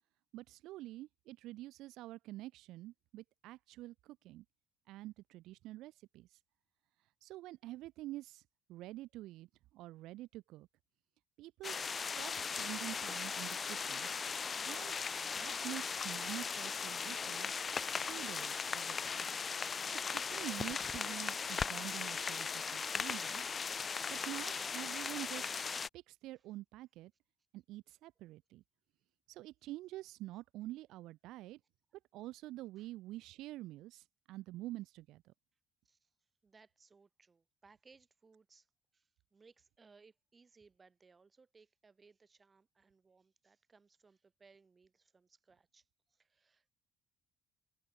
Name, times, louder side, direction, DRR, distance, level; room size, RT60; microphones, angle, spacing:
voice 1, 0.3-4.4 4.9-6.3 7.2-8.4 8.7-9.5 9.7-10.7 11.4-14.1 14.7-14.9 15.3-17.6 18.0-19.3 19.9-23.5 24.1-25.5 25.9-27.1 27.5-28.6 29.3-31.6 32.1-35.3, right 16 dB, 75° right, 2.2 m, -47 dB
sound 1, 11.6-25.9, left 5 dB, 25° left, 0.8 m, -38 dB
voice 2, 36.4-38.7 38.9-46.7, right 4 dB, 20° right, 5.1 m, -65 dB
open air
cardioid pair, 160°, 0 cm